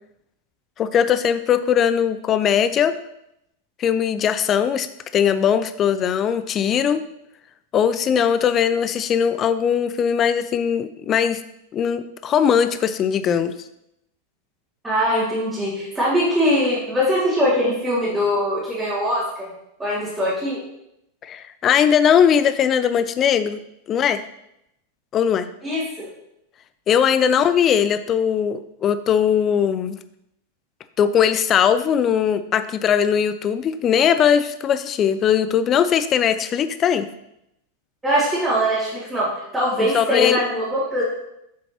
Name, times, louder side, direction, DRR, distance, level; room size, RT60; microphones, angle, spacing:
voice 1, 0.8-3.0 3.8-4.9 5.1-7.0 7.7-11.4 11.7-13.5 21.2-23.6 23.9-24.2 25.1-25.5 26.9-30.0 31.0-37.1 39.8-40.4, left 8 dB, 30° left, 12 dB, 0.4 m, -19 dB
voice 2, 14.8-19.5 19.8-20.6 25.6-26.1 38.0-41.0, equal, 10° right, -10 dB, 2.5 m, -22 dB
7.6 x 7.0 x 2.9 m, 0.81 s
figure-of-eight pair, 90°, 0 cm